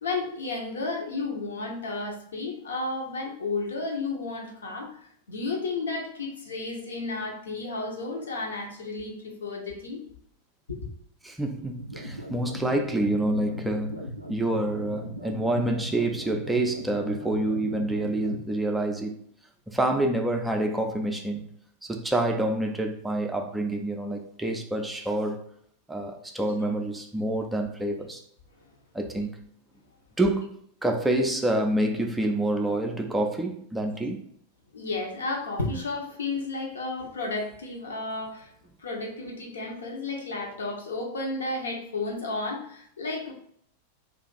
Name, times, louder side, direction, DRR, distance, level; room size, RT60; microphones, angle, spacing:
voice 1, 0.0-10.0 10.7-10.8 26.6-26.7 34.7-38.5 38.8-43.3, left 3 dB, 70° left, 0 dB, 0.8 m, -32 dB
voice 2, 11.2-19.2 19.7-21.5 21.8-25.4 25.9-28.2 28.9-29.4 30.2-34.2, right 1 dB, 5° right, 3 dB, 0.4 m, -27 dB
sound 1, 11.8-18.4, equal, 85° right, 0.4 m, -38 dB
2.5 x 2.4 x 3.9 m, 0.67 s
figure-of-eight pair, 90°, 0 cm